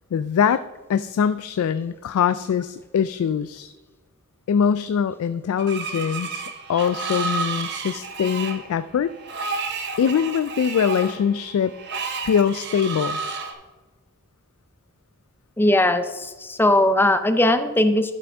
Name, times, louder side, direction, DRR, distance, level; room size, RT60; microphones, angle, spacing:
voice 1, 0.1-0.6 0.9-3.7 4.5-6.4 6.7-9.1 10.0-11.7 12.2-13.2, left 7 dB, 75° left, 13 dB, 0.3 m, -22 dB
Screech, 5.6-13.5, right 4 dB, 55° right, 0.9 m, -31 dB
voice 2, 15.6-18.1, left 1 dB, 10° left, 9 dB, 0.5 m, -19 dB
11.5 x 6.2 x 3.4 m, 1.2 s
head